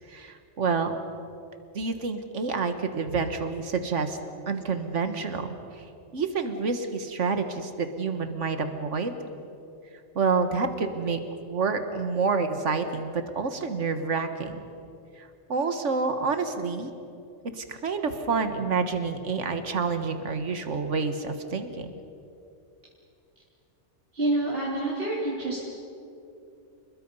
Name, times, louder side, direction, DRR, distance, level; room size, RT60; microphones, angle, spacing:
voice 1, 0.1-1.0 1.7-4.2 4.5-5.5 6.1-9.1 10.1-11.2 11.5-14.6 15.2-16.9 17.6-21.9, right 4 dB, 85° right, 8 dB, 1.8 m, -28 dB
voice 2, 24.1-25.6, right 2 dB, 50° right, -6 dB, 3.7 m, -27 dB
28.5 x 21.5 x 5.5 m, 2.7 s
omnidirectional pair, 1.2 m